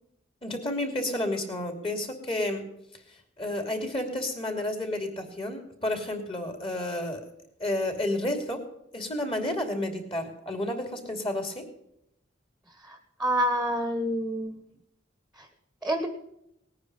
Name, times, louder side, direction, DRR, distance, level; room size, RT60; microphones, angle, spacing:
voice 1, 0.4-2.6 3.4-7.3 7.6-8.6 8.9-11.7, left 1 dB, 30° left, 6 dB, 2.8 m, -31 dB
voice 2, 12.8-14.6 15.4-15.5 15.8-16.1, equal, 5° right, 7 dB, 1.3 m, -28 dB
18.5 x 9.6 x 5.4 m, 0.79 s
head